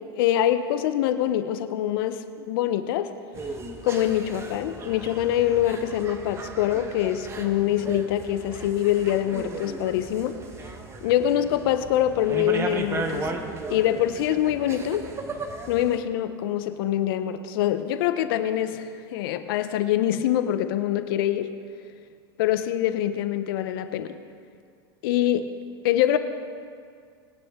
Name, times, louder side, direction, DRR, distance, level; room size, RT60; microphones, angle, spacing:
voice 1, 0.2-3.1 3.8-10.4 11.0-13.3 13.7-15.1 15.7-21.5 22.4-24.1 25.0-25.5 25.8-26.2, left 11 dB, 60° left, 10 dB, 0.9 m, -24 dB
sound 1, 3.3-16.0, right 3 dB, 20° right, 1.2 m, -36 dB
20.5 x 9.3 x 3.7 m, 2.2 s
hypercardioid pair, 120°, 13 cm